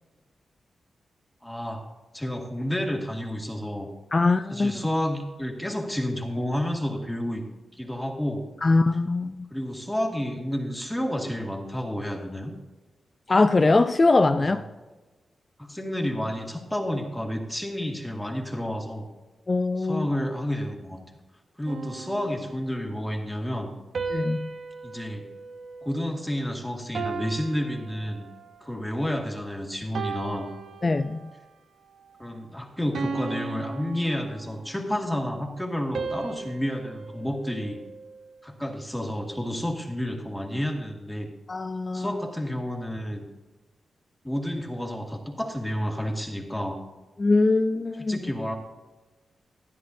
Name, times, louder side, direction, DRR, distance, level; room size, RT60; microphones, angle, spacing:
voice 1, 1.4-1.9 2.1-3.9 4.5-7.4 7.7-8.5 9.5-12.5 14.5-14.6 15.6-19.1 19.8-21.0 21.6-23.7 24.8-25.3 25.8-28.3 28.6-30.5 32.2-37.8 38.4-41.3 41.9-43.2 44.2-46.8 48.0-48.5, equal, 5° left, 1.9 m, -30 dB
voice 2, 4.1-4.7 8.6-9.5 13.3-14.6 19.5-20.1 24.1-24.5 30.8-31.2 41.5-42.2 47.2-48.2, left 3 dB, 35° left, 0.4 m, -22 dB
sound 1, 21.7-23.0 23.9-26.5 26.9-28.7 29.2-29.5 29.9-31.5 32.0-32.2 32.9-34.8 35.9-38.3, right 4 dB, 70° right, 0.7 m, -37 dB
13.5 x 10.5 x 2.7 m
cardioid pair, 80°, 0 cm